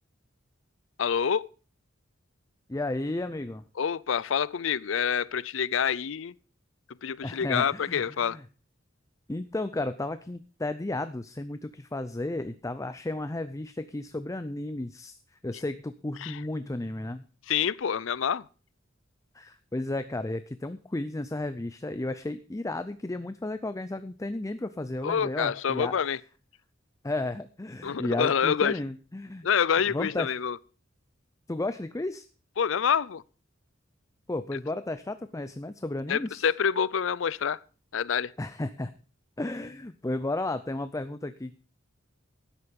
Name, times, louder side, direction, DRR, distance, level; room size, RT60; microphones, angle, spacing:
voice 1, 1.0-1.5 3.8-6.3 7.0-8.4 16.2-16.4 17.5-18.4 25.0-26.2 27.8-28.8 29.4-30.6 32.6-33.2 36.1-37.6 37.9-38.3, left 7 dB, 70° left, 0.5 m, -27 dB
voice 2, 2.7-3.6 7.2-8.5 9.3-15.2 15.4-17.2 19.3-25.9 27.0-29.5 29.9-30.3 31.5-32.3 34.3-36.5 38.4-38.9 39.4-41.6, left 2 dB, 15° left, 0.5 m, -33 dB
12.5 x 9.9 x 5.3 m
head